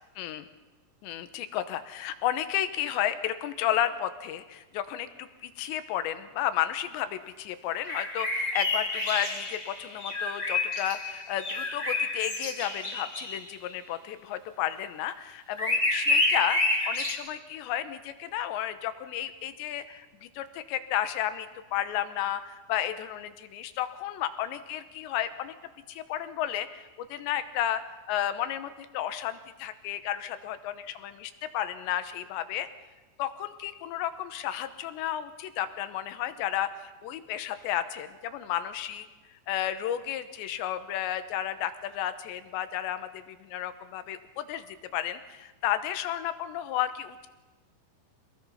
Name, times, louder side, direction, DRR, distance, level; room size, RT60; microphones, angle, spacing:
voice 1, 1.0-25.5 25.9-27.8 28.1-32.7 33.2-39.1 39.5-47.3, left 11 dB, 85° left, 11 dB, 3.2 m, -32 dB
sound 1, 7.8-13.4 15.6-17.1, left 2 dB, 20° left, 1.2 m, -29 dB
26.0 x 19.5 x 5.7 m, 1.2 s
omnidirectional pair, 5.0 m